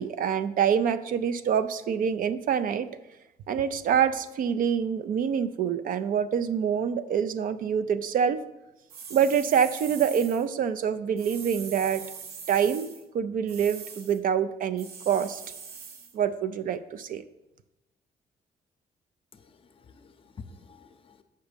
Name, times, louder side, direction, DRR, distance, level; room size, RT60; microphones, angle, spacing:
voice 1, 0.0-2.9 3.5-8.4 9.1-12.0 12.5-15.4 16.1-17.2, right 8 dB, 60° right, 12 dB, 0.4 m, -26 dB
sound 1, 8.9-10.4 11.2-13.0 13.5-14.2 14.8-16.1, right 6 dB, 85° right, 1.1 m, -42 dB
voice 2, 19.3-21.2, left 5 dB, 35° left, 8 dB, 0.6 m, -49 dB
7.1 x 5.6 x 5.1 m, 0.97 s
cardioid pair, 160°, 16 cm